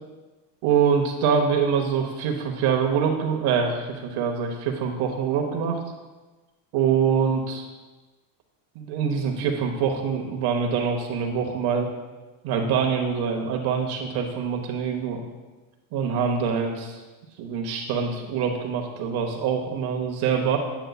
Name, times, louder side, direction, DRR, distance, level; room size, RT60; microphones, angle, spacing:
voice 1, 0.6-5.8 6.7-7.7 8.7-11.9 12.4-15.2 15.9-17.0 17.4-20.6, right 6 dB, 50° right, 2 dB, 0.9 m, -24 dB
9.0 x 7.8 x 2.3 m, 1.2 s
cardioid pair, 145°, 49 cm